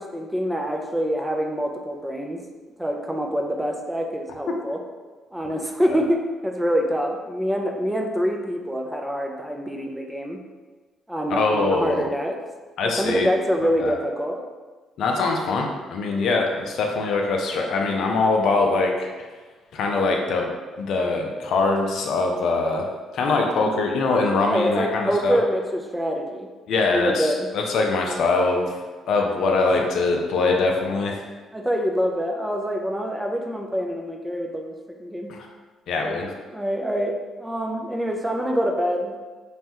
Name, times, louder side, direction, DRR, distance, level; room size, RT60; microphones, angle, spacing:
voice 1, 0.0-2.4 2.8-4.8 5.3-10.4 11.1-12.4 12.8-14.4 23.5-23.8 24.5-26.5 26.9-27.5 31.5-35.3 36.0-36.2 36.5-39.2, equal, 10° right, 2 dB, 0.4 m, -25 dB
voice 2, 11.3-12.0 12.8-13.3 13.8-13.9 15.0-19.3 19.7-20.5 20.8-22.9 23.1-25.4 26.7-28.8 29.1-31.2 35.3-35.5 35.9-36.3, left 3 dB, 65° left, 1 dB, 0.4 m, -23 dB
3.1 x 2.2 x 2.8 m, 1.3 s
hypercardioid pair, 55°, 0 cm